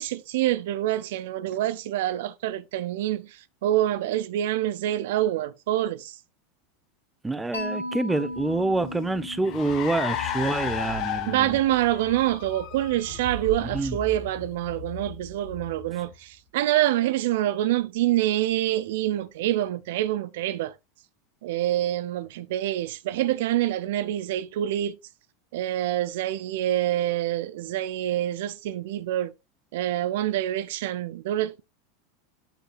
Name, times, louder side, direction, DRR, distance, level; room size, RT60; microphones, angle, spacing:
voice 1, 0.0-6.2 11.3-20.7 21.4-25.0 25.5-29.3 29.7-31.6, right 13 dB, 65° right, 0.5 m, -26 dB
voice 2, 7.2-11.6 13.6-14.0, right 2 dB, 10° right, 0.8 m, -27 dB
Mallet percussion, 7.5-11.5, left 1 dB, 90° left, 3.4 m, -37 dB
Car, 8.4-16.1, left 6 dB, 50° left, 1.5 m, -35 dB
8.9 x 6.6 x 2.5 m
hypercardioid pair, 90°, 0 cm